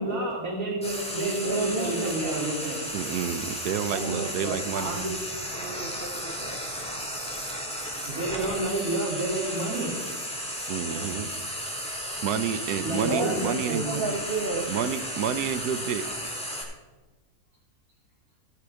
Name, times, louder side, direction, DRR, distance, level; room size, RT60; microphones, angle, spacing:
voice 1, 0.0-2.8 4.7-5.2 8.1-10.0 12.8-14.0, right 2 dB, 65° right, -8 dB, 3.5 m, -30 dB
Frying (food), 0.8-16.6, equal, 5° left, 2.2 m, -34 dB
voice 2, 1.2-2.4 3.9-4.6 5.6-6.6 10.8-11.1 13.1-14.7, right 3 dB, 40° right, 4 dB, 1.1 m, -32 dB
voice 3, 2.9-5.0 10.7-11.3 12.2-14.1 14.7-16.1, right 8 dB, 85° right, 12 dB, 1.3 m, -30 dB
16.0 x 9.8 x 3.5 m, 1.2 s
omnidirectional pair, 1.6 m